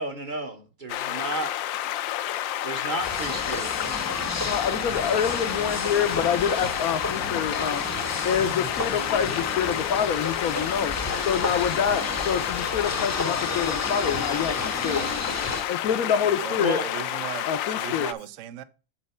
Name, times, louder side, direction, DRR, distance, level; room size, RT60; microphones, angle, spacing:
voice 1, 0.0-1.5 2.6-4.0 16.6-16.9, right 2 dB, 35° right, 0.8 m, -32 dB
sound 1, 0.9-18.1, left 12 dB, 80° left, 1.3 m, -30 dB
sound 2, 3.0-15.7, left 1 dB, 15° left, 0.5 m, -32 dB
voice 2, 4.4-7.9 8.2-10.9 11.2-15.1 15.7-16.8 17.4-18.1, left 8 dB, 65° left, 0.9 m, -26 dB
voice 3, 16.4-17.5 17.8-18.6, right 11 dB, 65° right, 0.7 m, -37 dB
8.7 x 4.0 x 5.5 m
omnidirectional pair, 2.0 m